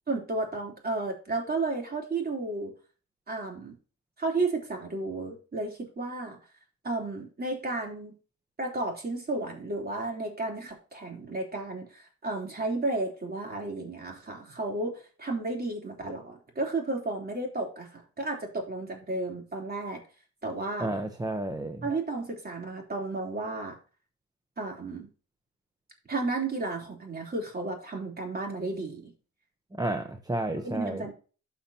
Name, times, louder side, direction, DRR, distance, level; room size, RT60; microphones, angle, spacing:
voice 1, 0.1-2.7 3.3-3.7 4.2-6.4 6.8-8.2 8.6-20.0 20.4-20.9 21.8-23.8 24.6-25.1 26.1-29.1 30.6-31.1, right 2 dB, 30° right, 0 dB, 3.4 m, -33 dB
voice 2, 20.8-21.8 29.8-31.0, right 1 dB, 10° right, 6 dB, 0.9 m, -31 dB
12.5 x 5.8 x 2.9 m, 0.36 s
cardioid pair, 90°, 30 cm